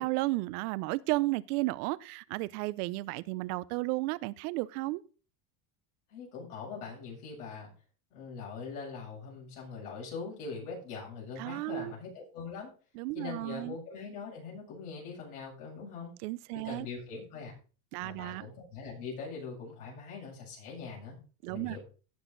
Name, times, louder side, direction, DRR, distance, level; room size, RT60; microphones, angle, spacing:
voice 1, 0.0-5.0 11.4-11.9 13.0-13.7 16.2-16.9 17.9-18.5 21.4-21.8, right 21 dB, 80° right, 0.8 m, -33 dB
voice 2, 6.1-7.7 8.1-12.7 13.1-16.1 16.5-17.5 18.0-21.2 21.5-21.8, left 5 dB, 90° left, 7.5 m, -42 dB
16.5 x 6.4 x 4.0 m
supercardioid pair, 140°, 44 cm